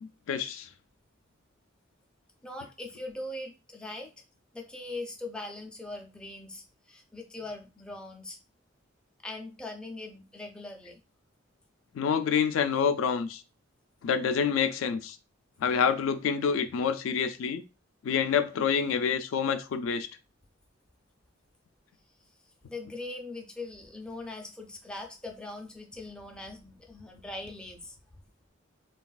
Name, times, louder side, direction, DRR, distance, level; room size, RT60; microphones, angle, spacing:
voice 1, 0.0-0.7 11.9-13.4 14.0-15.2 15.6-17.6 18.0-20.1, left 6 dB, 75° left, 0.3 m, -27 dB
voice 2, 2.4-4.1 4.5-8.4 9.2-11.0 22.7-28.0, left 2 dB, 5° left, 0.4 m, -41 dB
3.2 x 2.3 x 2.3 m
head